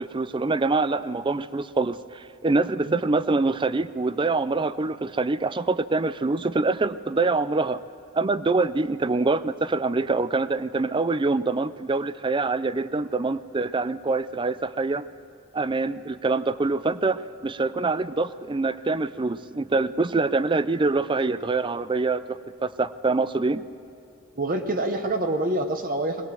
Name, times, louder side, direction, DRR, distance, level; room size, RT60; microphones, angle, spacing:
voice 1, 0.0-7.8 8.1-15.1 15.5-23.7, right 3 dB, 25° right, 15 dB, 0.5 m, -25 dB
voice 2, 24.3-26.3, right 1 dB, 45° right, 6 dB, 1.1 m, -26 dB
21.5 x 19.0 x 7.6 m, 2.7 s
head